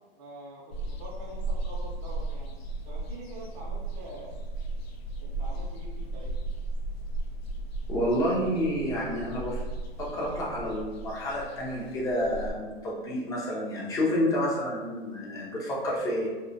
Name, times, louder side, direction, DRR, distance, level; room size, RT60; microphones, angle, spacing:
voice 1, 0.2-2.5 2.9-4.4 5.2-6.4, right 1 dB, 45° right, -4 dB, 0.6 m, -45 dB
sound 1, 0.7-12.5, right 2 dB, 90° left, 0.5 m, -36 dB
voice 2, 7.9-9.6 10.0-16.4, equal, 10° left, -5 dB, 0.4 m, -29 dB
2.3 x 2.2 x 2.5 m, 1.3 s
hypercardioid pair, 125°, 30 cm